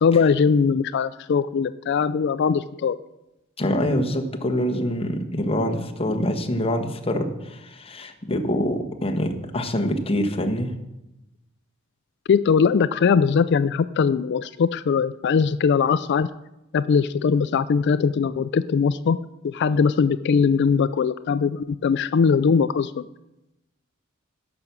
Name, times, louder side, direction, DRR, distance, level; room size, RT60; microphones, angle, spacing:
voice 1, 0.0-3.0 12.3-16.3 16.7-19.2 19.4-23.0, left 6 dB, 55° left, 14 dB, 0.4 m, -20 dB
voice 2, 3.6-10.7, equal, 30° left, 3 dB, 1.3 m, -25 dB
16.0 x 6.0 x 6.9 m, 0.93 s
head